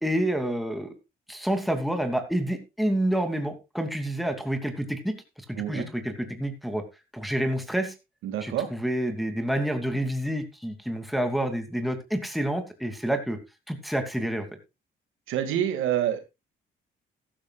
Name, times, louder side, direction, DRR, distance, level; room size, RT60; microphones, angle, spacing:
voice 1, 0.0-0.9 1.3-5.1 5.5-6.8 7.1-7.9 8.4-13.4 13.7-14.5, right 1 dB, ahead, 6 dB, 2.7 m, -28 dB
voice 2, 5.6-5.9 8.2-8.7 15.3-16.2, right 10 dB, 90° right, 8 dB, 2.3 m, -27 dB
14.5 x 13.0 x 2.4 m, 0.25 s
cardioid pair, 90°, 20 cm